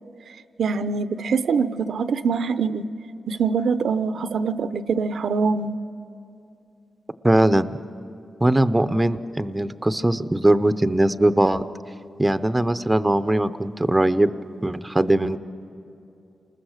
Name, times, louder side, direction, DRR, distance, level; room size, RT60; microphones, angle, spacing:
voice 1, 0.6-2.8 3.3-5.8, right 5 dB, 75° right, 12 dB, 0.6 m, -24 dB
voice 2, 7.2-7.8 8.4-11.6 12.2-14.3 14.6-15.4, right 1 dB, 15° right, 12 dB, 0.6 m, -20 dB
29.0 x 20.5 x 6.5 m, 2.7 s
wide cardioid pair, 105°, 0 cm